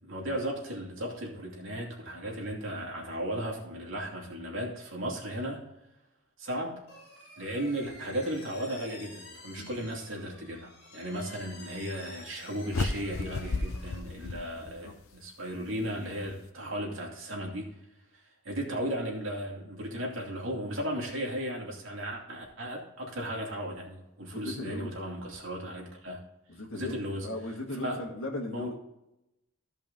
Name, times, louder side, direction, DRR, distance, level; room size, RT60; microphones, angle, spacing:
voice 1, 0.0-5.6 6.4-6.8 7.4-17.7 18.4-26.2 26.7-27.3 27.8-28.0 28.5-28.7, equal, 65° right, -1 dB, 2.5 m, -35 dB
sound 1, 6.9-14.0, left 2 dB, 50° left, 2.8 m, -50 dB
voice 2, 9.5-9.9 10.1-10.4 14.2-14.9 24.3-25.0 26.5-27.0 27.2-28.8, left 1 dB, 65° left, 1 dB, 1.9 m, -39 dB
sound 2, 12.7-15.1, left 3 dB, 90° left, 0.8 m, -33 dB
14.5 x 5.4 x 3.8 m, 0.89 s
head